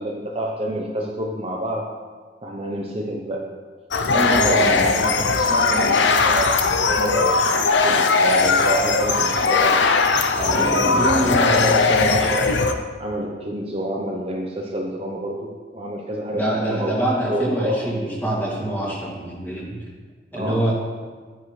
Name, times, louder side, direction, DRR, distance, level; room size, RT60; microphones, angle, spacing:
voice 1, 0.0-1.9 2.4-3.5 4.0-9.9 10.4-12.6 13.0-17.0 17.2-17.9 20.3-20.7, equal, 35° right, -1 dB, 0.9 m, -27 dB
sound 1, 3.9-12.7, left 4 dB, 85° left, 0.7 m, -19 dB
voice 2, 4.3-5.1 10.5-11.7 16.3-19.8 20.3-20.7, right 1 dB, 10° left, -5 dB, 2.5 m, -25 dB
11.0 x 9.5 x 3.3 m, 1.5 s
head